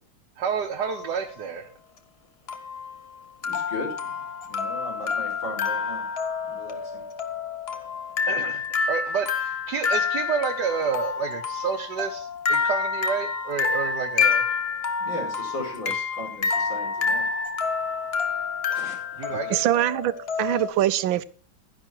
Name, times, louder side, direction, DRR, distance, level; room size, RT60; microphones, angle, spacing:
voice 1, 0.4-1.7 8.3-14.4 15.9-16.0 19.2-19.6, right 6 dB, 60° right, 1.6 m, -29 dB
sound 1, 0.8-1.2 2.5-20.7, left 5 dB, 40° left, 1.1 m, -28 dB
voice 2, 3.5-4.1 4.4-6.0 6.5-7.0 15.0-17.2 18.7-19.3, left 1 dB, 65° left, 5.6 m, -37 dB
voice 3, 19.3-20.1 20.4-21.2, right 13 dB, 75° right, 1.4 m, -23 dB
12.0 x 10.5 x 4.5 m
omnidirectional pair, 2.2 m